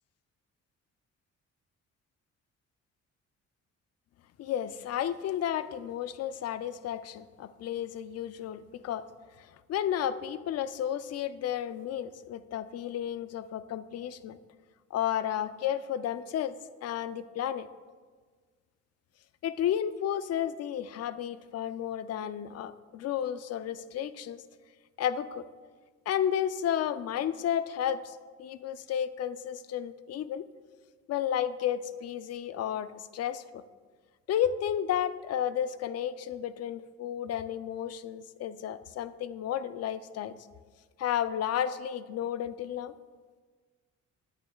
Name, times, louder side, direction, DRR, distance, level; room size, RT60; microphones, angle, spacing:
voice 1, 4.4-9.0 9.4-14.4 14.9-16.6 16.8-17.7 19.4-24.4 25.0-25.4 26.1-30.4 31.1-33.6 34.3-40.3 41.0-42.9, left 10 dB, 55° left, 14 dB, 0.4 m, -32 dB
9.5 x 9.0 x 2.3 m, 1.5 s
cardioid pair, 90°, 30 cm